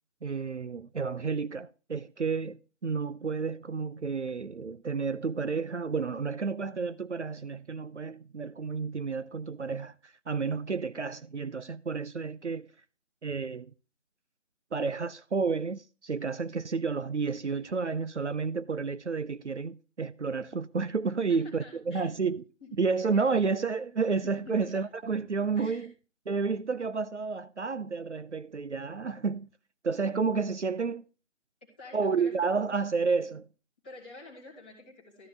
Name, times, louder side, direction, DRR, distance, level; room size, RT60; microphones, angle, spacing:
voice 1, 0.2-12.7 13.2-13.7 14.7-22.4 22.8-25.9 26.3-29.5 29.8-31.0 31.9-33.5, right 5 dB, 65° right, 0.7 m, -31 dB
voice 2, 21.1-22.1 22.6-22.7 23.0-23.3 24.2-24.8 25.6-25.9 31.8-32.3 33.8-35.3, left 3 dB, 5° left, 1.5 m, -48 dB
13.0 x 9.5 x 3.3 m
figure-of-eight pair, 165°, 38 cm